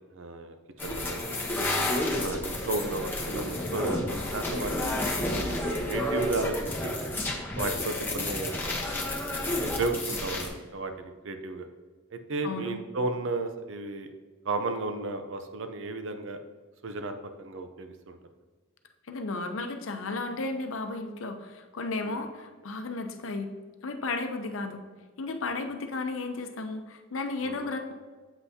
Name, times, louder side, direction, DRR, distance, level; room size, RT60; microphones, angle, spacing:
voice 1, 0.1-0.6 0.8-1.3 1.6-1.7 2.2-5.0 5.4-6.5 6.8-6.9 7.5-8.6 9.6-11.7 12.1-14.1 14.4-16.4 16.8-18.2 22.0-22.2 25.5-25.7 27.4-27.6, right 3 dB, 70° right, 7 dB, 0.6 m, -33 dB
sound 1, 0.8-10.5, left 1 dB, 10° left, 0.9 m, -30 dB
voice 2, 12.4-12.8 19.1-23.5 23.8-24.8 25.2-27.9, left 3 dB, 75° left, 6 dB, 0.7 m, -34 dB
8.0 x 5.6 x 2.8 m, 1.4 s
head